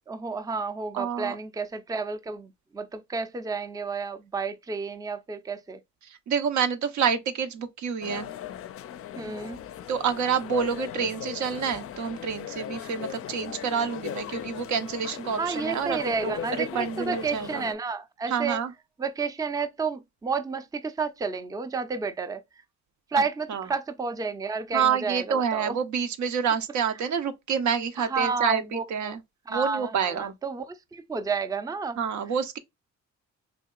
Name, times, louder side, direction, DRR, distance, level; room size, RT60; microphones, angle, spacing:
voice 1, 0.1-5.8 9.2-9.6 15.4-18.6 19.0-22.4 23.1-25.8 28.0-29.2 29.5-32.0, right 4 dB, 10° right, 0.5 m, -31 dB
voice 2, 0.9-1.4 6.0-8.3 9.9-17.6 18.3-18.7 23.5-23.7 24.7-29.2 29.5-30.3 32.0-32.6, right 7 dB, 70° right, 0.7 m, -28 dB
sound 1, 8.0-17.7, left 10 dB, 50° left, 0.4 m, -38 dB
3.5 x 2.8 x 2.3 m
cardioid pair, 90°, 30 cm